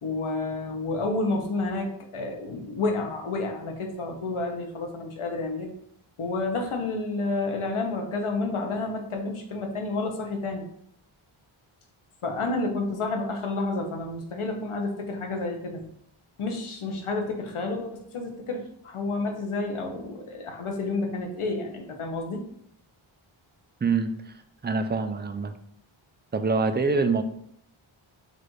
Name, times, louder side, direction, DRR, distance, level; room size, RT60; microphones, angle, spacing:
voice 1, 0.0-5.7 6.2-10.7 12.2-15.8 16.4-22.4, left 3 dB, 80° left, 3 dB, 1.0 m, -30 dB
voice 2, 23.8-24.4 24.6-25.5 26.3-27.2, right 4 dB, 25° right, 8 dB, 0.3 m, -25 dB
6.6 x 2.5 x 3.2 m, 0.70 s
wide cardioid pair, 105°, 50 cm